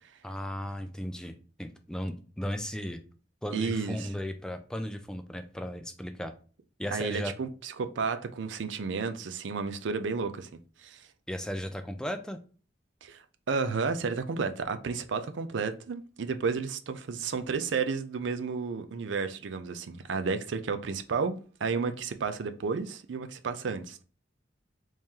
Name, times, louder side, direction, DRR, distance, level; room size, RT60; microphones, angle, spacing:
voice 1, 0.2-3.0 3.4-6.3 6.8-7.3 11.3-12.4, equal, 5° left, 0.3 m, -36 dB
voice 2, 3.5-4.1 6.9-10.5 10.8-11.1 13.0-24.0, right 5 dB, 85° right, 0.4 m, -32 dB
3.1 x 2.8 x 3.6 m
head